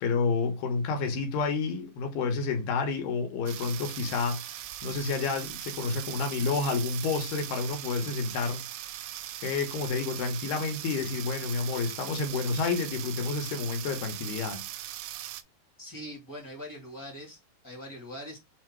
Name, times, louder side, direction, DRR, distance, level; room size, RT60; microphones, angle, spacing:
voice 1, 0.0-8.6 9.4-14.7, left 4 dB, 70° left, 2.7 m, -30 dB
sound 1, 3.5-15.4, right 13 dB, 85° right, 2.9 m, -40 dB
voice 2, 15.8-18.4, equal, 10° left, 1.0 m, -42 dB
7.5 x 2.8 x 4.5 m
omnidirectional pair, 5.3 m